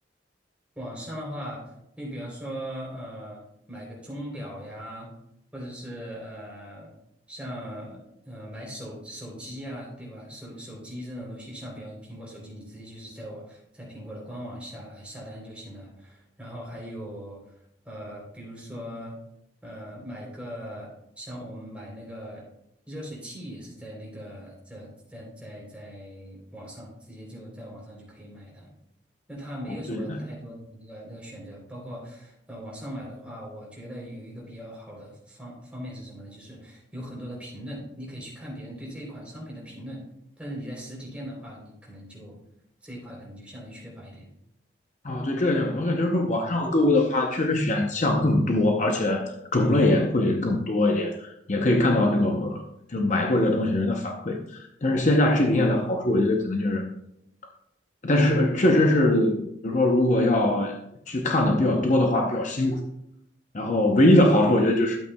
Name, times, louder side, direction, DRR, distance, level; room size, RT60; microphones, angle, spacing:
voice 1, 0.7-5.1 5.5-6.9 7.3-17.6 17.8-19.2 19.6-22.4 22.9-28.7 29.3-40.0 40.4-42.4 42.8-44.3, equal, 5° right, 3.3 m, -40 dB
voice 2, 29.9-30.3 45.0-52.6 52.9-56.8 58.0-60.8 61.1-62.8 63.5-65.0, left 1 dB, 40° left, 0.7 m, -22 dB
12.0 x 8.3 x 2.2 m
head